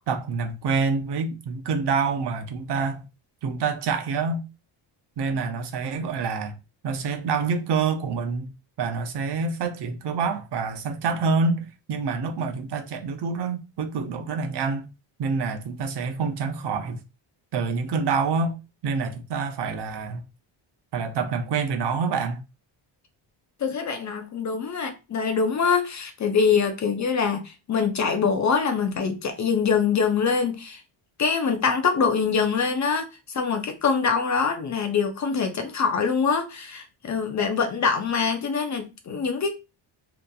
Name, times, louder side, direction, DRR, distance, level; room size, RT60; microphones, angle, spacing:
voice 1, 0.1-3.1 3.4-4.4 5.2-6.6 6.8-8.5 8.8-14.9 15.2-17.0 17.5-18.6 18.8-20.2 20.9-22.4, right 4 dB, 55° right, 0.6 m, -27 dB
voice 2, 23.6-30.8 31.2-39.6, left 5 dB, 40° left, 0.4 m, -24 dB
2.8 x 2.4 x 2.2 m
cardioid pair, 120°, 49 cm